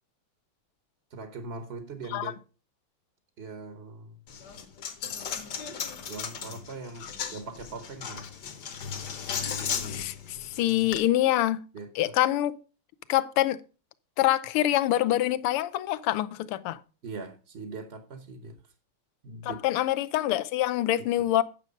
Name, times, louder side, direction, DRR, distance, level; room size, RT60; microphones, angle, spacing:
voice 1, 1.1-2.4 3.4-4.2 6.1-8.3 10.3-10.8 11.7-12.1 17.0-18.7 19.2-19.6 21.0-21.3, right 3 dB, 50° right, 0.7 m, -41 dB
Coin (dropping), 4.3-11.0, left 7 dB, 55° left, 1.5 m, -36 dB
voice 2, 9.8-11.6 12.0-12.5 13.1-13.6 14.2-16.8 19.4-21.4, left 14 dB, 85° left, 1.6 m, -25 dB
9.2 x 6.2 x 5.2 m
omnidirectional pair, 2.4 m